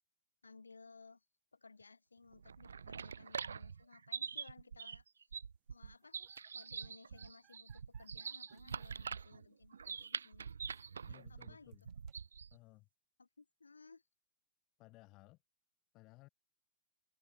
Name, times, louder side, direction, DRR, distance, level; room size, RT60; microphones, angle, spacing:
voice 1, 0.4-1.2 1.5-5.3 5.7-6.2 6.5-10.5 11.3-11.8 13.2-14.0, left 4 dB, 85° left, 2.8 m, -60 dB
sound 1, 2.3-12.6, right 6 dB, 75° right, 0.3 m, -45 dB
sound 2, 5.8-12.3, right 22 dB, 40° right, 1.9 m, -74 dB
voice 2, 11.0-11.9 12.5-12.9 14.8-15.4 15.9-16.3, left 22 dB, 40° left, 1.1 m, -60 dB
figure-of-eight pair, 105°, 0 cm